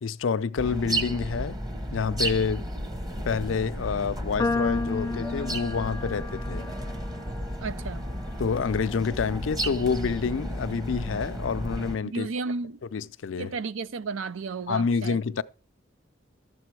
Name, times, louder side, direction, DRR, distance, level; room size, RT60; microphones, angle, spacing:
voice 1, 0.0-1.6 1.9-2.7 3.3-6.7 8.4-12.3 12.9-13.6 14.7-15.4, left 5 dB, 75° left, 0.5 m, -28 dB
sound 1, 0.6-12.0, right 1 dB, 20° right, 1.0 m, -33 dB
sound 2, 4.4-10.7, left 3 dB, 15° left, 0.6 m, -35 dB
voice 2, 7.6-8.0 12.0-12.8 13.4-15.2, right 4 dB, 85° right, 0.5 m, -33 dB
12.5 x 7.6 x 4.6 m
head